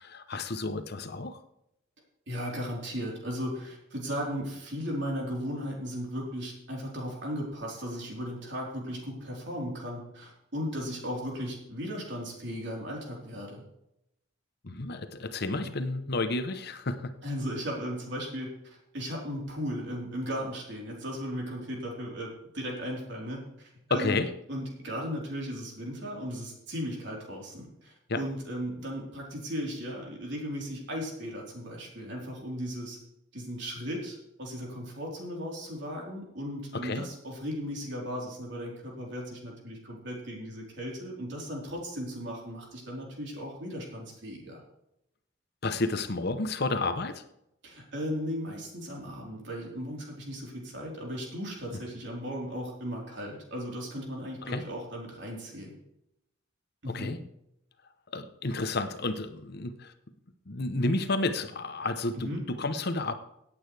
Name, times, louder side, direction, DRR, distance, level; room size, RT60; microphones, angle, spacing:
voice 1, 0.0-1.4 14.6-17.1 23.9-24.3 28.1-28.2 36.7-37.1 45.6-47.2 54.4-54.6 56.9-57.2 58.1-59.9 60.5-63.1, left 2 dB, 55° left, 10 dB, 0.9 m, -31 dB
voice 2, 2.3-13.6 15.6-15.7 17.2-24.2 24.5-33.0 33.3-44.6 47.6-55.8 56.8-57.2 62.2-62.4, equal, 60° right, -2 dB, 4.0 m, -36 dB
17.0 x 8.7 x 3.4 m, 0.82 s
head